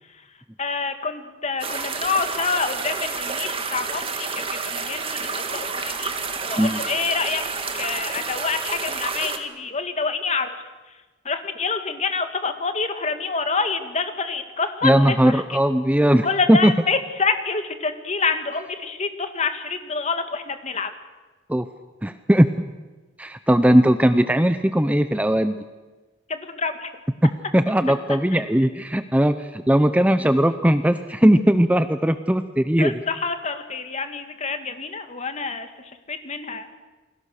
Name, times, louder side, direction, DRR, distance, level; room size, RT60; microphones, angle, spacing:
voice 1, 0.6-6.1 6.4-7.4 7.7-10.6 11.3-15.6 16.2-20.9 26.3-26.9 28.3-28.4 32.8-36.7, left 4 dB, 35° left, 8 dB, 1.9 m, -27 dB
sound 1, 1.6-9.4, right 4 dB, 30° right, 2.2 m, -29 dB
voice 2, 14.8-16.7 21.5-21.7 22.0-22.5 23.2-25.5 27.5-33.0, equal, 5° right, 10 dB, 0.7 m, -18 dB
29.0 x 22.0 x 6.5 m, 1.2 s
head